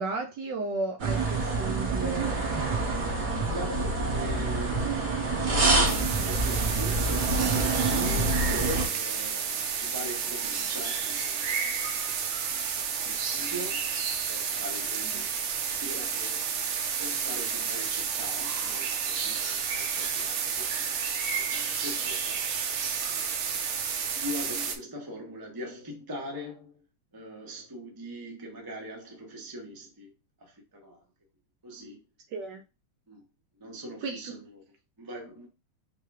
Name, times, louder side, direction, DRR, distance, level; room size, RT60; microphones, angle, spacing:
voice 1, 0.0-2.4 15.1-15.2 32.3-32.6 34.0-34.3, right 3 dB, 70° right, 1.1 m, -34 dB
sound 1, 1.0-8.9, right 3 dB, 55° right, 1.7 m, -27 dB
voice 2, 3.4-11.7 13.0-20.5 20.7-21.0 21.3-22.4 23.1-23.4 24.1-26.8 27.1-30.1 30.4-31.0 31.6-32.0 33.1-33.2 33.6-34.6 35.0-35.5, equal, 35° right, 0.3 m, -41 dB
sound 2, 5.9-24.8, right 6 dB, 85° right, 1.6 m, -31 dB
4.7 x 2.3 x 4.7 m
omnidirectional pair, 2.4 m